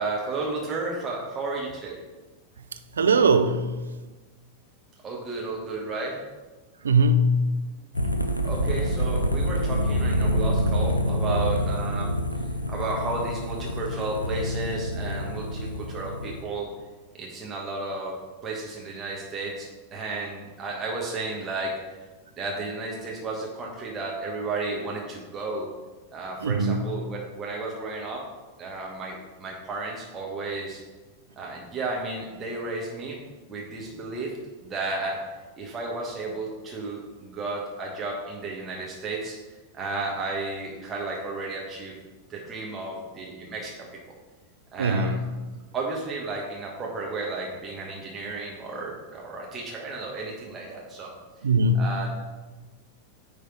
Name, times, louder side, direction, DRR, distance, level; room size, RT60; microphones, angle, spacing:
voice 1, 0.0-2.0 5.0-6.2 8.4-12.1 12.7-16.7 17.1-22.0 22.4-25.7 26.1-28.3 28.6-30.8 31.4-33.2 33.5-34.3 34.6-35.2 35.6-39.3 39.7-41.9 42.3-43.9 44.7-45.2 45.7-51.1 51.7-52.1, right 3 dB, 20° right, 1.2 m, -33 dB
voice 2, 3.0-3.7 6.8-7.5 26.4-26.9 44.8-45.2 51.4-51.8, right 2 dB, 70° right, 0.5 m, -20 dB
sound 1, 7.9-16.4, equal, 85° left, 0.5 m, -27 dB
9.2 x 3.4 x 4.5 m
figure-of-eight pair, 90°, 0 cm